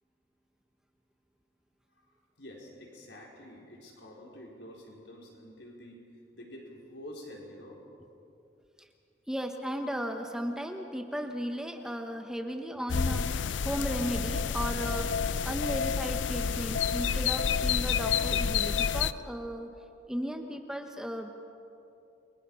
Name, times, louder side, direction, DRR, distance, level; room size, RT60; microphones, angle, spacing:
voice 1, 2.4-6.0 6.3-7.8, equal, 75° left, -2 dB, 4.9 m, -48 dB
voice 2, 9.3-15.1 15.4-19.7 20.1-21.3, equal, 5° right, 4 dB, 1.1 m, -35 dB
sound 1, 12.9-19.1, left 6 dB, 90° left, 0.5 m, -29 dB
30.0 x 23.0 x 5.7 m, 2.7 s
head